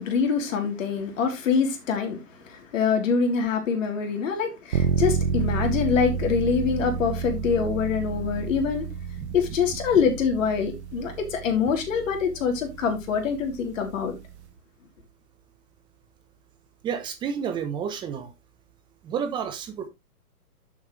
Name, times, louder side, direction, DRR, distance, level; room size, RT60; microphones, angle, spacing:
voice 1, 0.0-8.9 9.3-14.2, left 6 dB, 55° left, 3.3 m, -25 dB
sound 1, 4.7-14.5, right 7 dB, 45° right, 1.1 m, -30 dB
voice 2, 16.8-18.3 19.0-19.9, right 7 dB, 10° right, 0.8 m, -30 dB
9.1 x 7.3 x 3.2 m
hypercardioid pair, 145°, 47 cm